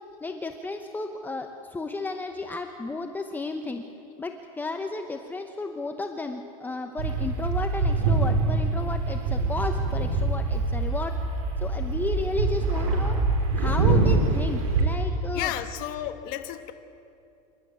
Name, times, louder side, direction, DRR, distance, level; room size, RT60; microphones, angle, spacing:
voice 1, 0.2-3.8 4.2-11.1 11.6-13.2 13.5-15.5, left 3 dB, 10° left, 5 dB, 1.0 m, -33 dB
sound 1, 7.0-14.9, right 3 dB, 90° right, 4.2 m, -24 dB
voice 2, 15.3-16.7, left 13 dB, 50° left, 7 dB, 1.3 m, -32 dB
27.0 x 12.5 x 9.4 m, 2.7 s
supercardioid pair, 135°, 18 cm